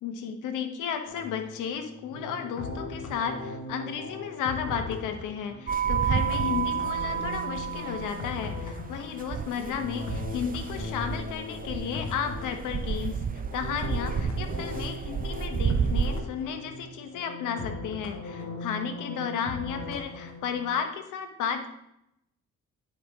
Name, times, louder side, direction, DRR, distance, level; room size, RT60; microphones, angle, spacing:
voice 1, 0.0-13.2 13.5-21.7, left 7 dB, 90° left, 6 dB, 1.0 m, -33 dB
sound 1, 1.0-20.7, left 3 dB, 70° left, 1.3 m, -39 dB
sound 2, 5.7-16.2, right 7 dB, 30° right, 0.5 m, -31 dB
9.3 x 5.0 x 3.5 m, 0.81 s
cardioid pair, 90°, 30 cm